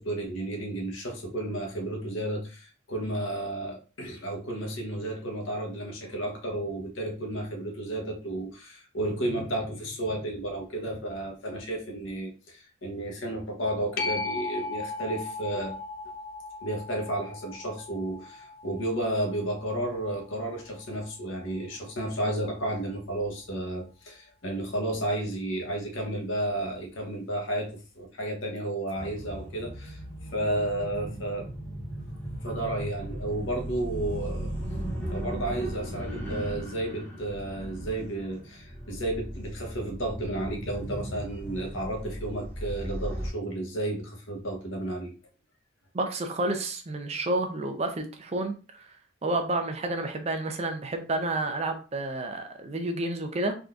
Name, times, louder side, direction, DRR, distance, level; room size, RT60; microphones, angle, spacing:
voice 1, 0.0-15.7 16.6-31.5 32.4-34.5 35.1-45.1, right 1 dB, 75° left, 2 dB, 0.9 m, -32 dB
sound 1, 14.0-21.1 26.7-26.8, left 3 dB, 50° left, 0.4 m, -37 dB
sound 2, 28.9-43.3, equal, 10° left, 0.8 m, -37 dB
voice 2, 45.9-48.8 49.2-53.6, right 2 dB, 35° right, 5 dB, 0.5 m, -30 dB
3.6 x 2.6 x 2.3 m, 0.35 s
head